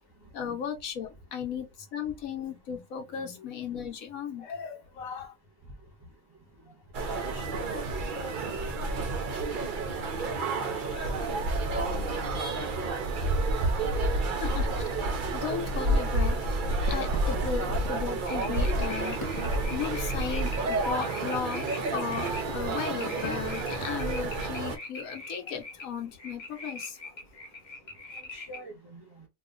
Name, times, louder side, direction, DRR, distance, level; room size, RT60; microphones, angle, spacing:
voice 1, 0.2-5.3 7.7-7.8 14.4-14.9 15.3-16.4 16.9-27.1, left 7 dB, 75° left, 1.1 m, -36 dB
sound 1, 6.9-24.8, right 2 dB, 55° right, 0.5 m, -30 dB
voice 2, 7.2-8.7 9.9-10.0 10.9-11.0 28.3-29.2, right 1 dB, 20° right, 0.9 m, -46 dB
sound 2, 16.7-24.3, left 1 dB, 15° left, 0.9 m, -43 dB
sound 3, 18.3-28.6, left 2 dB, 45° left, 0.6 m, -43 dB
2.7 x 2.4 x 3.7 m
omnidirectional pair, 1.5 m